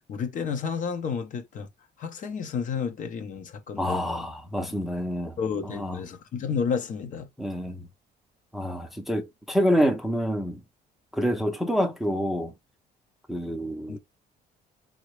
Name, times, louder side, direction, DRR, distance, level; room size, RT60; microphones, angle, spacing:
voice 1, 0.1-1.7 2.0-4.3 5.4-7.3 13.9-14.0, left 6 dB, 50° left, 0.6 m, -31 dB
voice 2, 3.8-5.3 5.7-6.0 7.4-7.8 8.5-10.6 11.1-12.5 13.3-14.0, equal, ahead, 0.5 m, -27 dB
3.8 x 2.1 x 3.1 m
cardioid pair, 110°, 17 cm